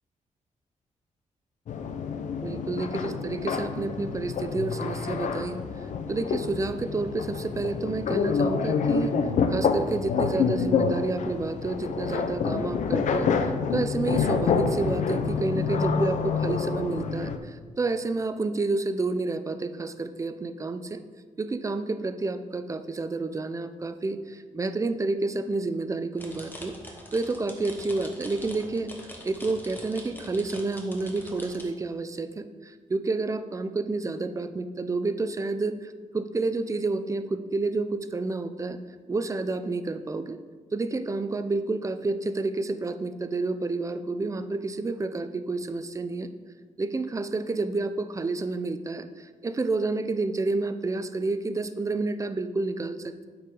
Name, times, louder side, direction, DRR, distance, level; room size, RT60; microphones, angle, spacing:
sound 1, 1.7-17.4, left 5 dB, 70° left, 0.6 m, -27 dB
voice 1, 2.4-5.6 6.1-9.1 9.5-21.0 21.4-26.8 27.1-28.9 29.2-38.8 39.1-40.4 40.7-46.3 46.8-53.3, right 3 dB, 25° right, 11 dB, 0.4 m, -29 dB
sound 2, 26.2-31.6, left 1 dB, 15° left, 1.3 m, -44 dB
8.1 x 4.8 x 5.2 m, 1.5 s
cardioid pair, 115°, 13 cm